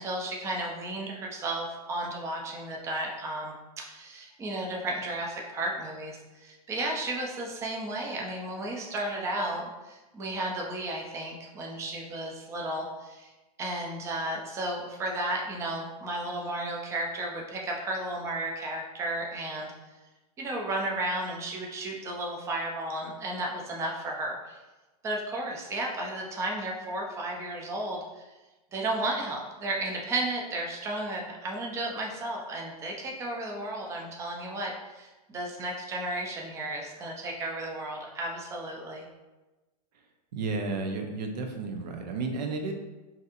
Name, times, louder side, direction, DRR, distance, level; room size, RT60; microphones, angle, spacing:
voice 1, 0.0-13.3 13.6-19.7 20.4-24.6 25.0-28.2 28.7-39.1, right 1 dB, 15° right, 0 dB, 0.4 m, -33 dB
voice 2, 40.3-42.7, right 3 dB, 85° right, 4 dB, 0.6 m, -32 dB
4.0 x 2.7 x 2.4 m, 1.1 s
supercardioid pair, 140°, 21 cm